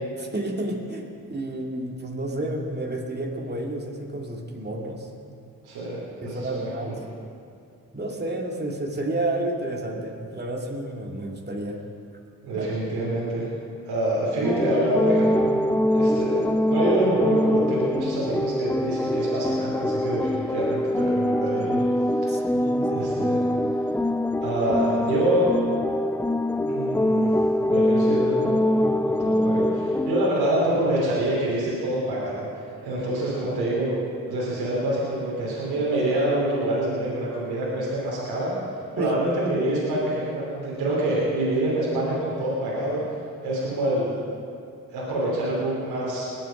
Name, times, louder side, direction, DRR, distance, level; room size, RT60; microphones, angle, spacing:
voice 1, 0.2-5.1 6.2-7.0 7.9-11.8 12.6-12.7 22.3-23.0 39.0-39.1, right 1 dB, 25° right, 0 dB, 2.5 m, -31 dB
voice 2, 5.6-6.9 12.4-13.5 13.8-15.6 15.9-21.8 22.2-22.3 22.9-23.4 24.4-25.5 26.7-27.3 27.7-32.5 32.8-34.0 34.2-38.5 39.0-43.0 43.4-44.2 44.9-46.2, right 1 dB, 90° right, -7 dB, 3.1 m, -26 dB
sound 1, 14.4-30.3, left 1 dB, 5° left, 0.3 m, -23 dB
21.5 x 7.8 x 5.2 m, 2.4 s
supercardioid pair, 45°, 37 cm